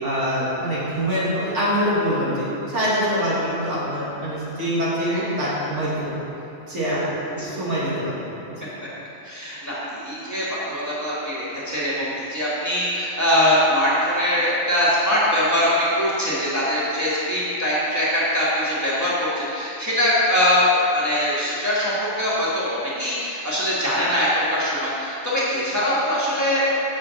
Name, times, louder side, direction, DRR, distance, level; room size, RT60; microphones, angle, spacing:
voice 1, 0.0-2.5 2.7-6.1 6.7-8.2 8.5-8.6, equal, 80° right, -8 dB, 2.3 m, -24 dB
voice 2, 9.2-15.7 16.0-26.8, equal, 15° left, -9 dB, 2.0 m, -22 dB
6.2 x 5.8 x 7.2 m, 2.9 s
omnidirectional pair, 1.2 m